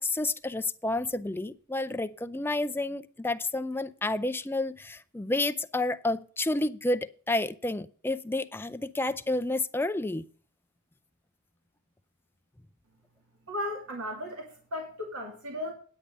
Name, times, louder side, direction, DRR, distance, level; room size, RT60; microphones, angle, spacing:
voice 1, 0.0-10.2, left 2 dB, 10° left, 0.5 m, -30 dB
voice 2, 13.5-15.7, left 1 dB, 75° right, 2.7 m, -36 dB
10.0 x 8.3 x 5.4 m
head